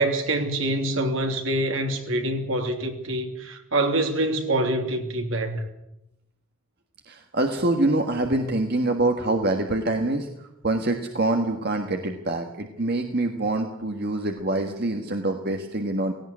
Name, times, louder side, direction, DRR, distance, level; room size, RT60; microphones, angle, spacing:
voice 1, 0.0-5.6, right 1 dB, 70° right, 3.0 m, -25 dB
voice 2, 7.1-10.3 10.6-16.1, right 2 dB, 50° right, 1.6 m, -25 dB
17.5 x 17.0 x 9.8 m
head